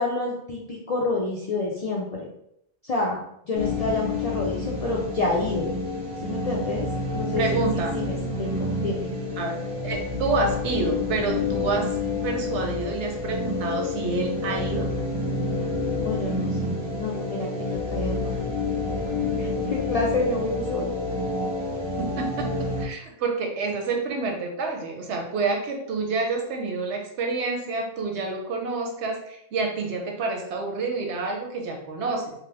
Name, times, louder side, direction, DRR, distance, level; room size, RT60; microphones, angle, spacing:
voice 1, 0.0-2.3 2.8-3.2 3.5-5.7 6.2-7.4 7.7-9.1 16.0-18.2 19.4-20.9, left 3 dB, 60° left, -3 dB, 0.4 m, -28 dB
sound 1, 3.5-22.9, left 2 dB, 30° right, 0.6 m, -29 dB
voice 2, 7.3-7.9 9.4-9.6 9.8-11.9 12.2-14.9 22.0-32.3, right 3 dB, 90° right, 2 dB, 1.0 m, -28 dB
2.9 x 2.3 x 3.3 m, 0.76 s
omnidirectional pair, 1.1 m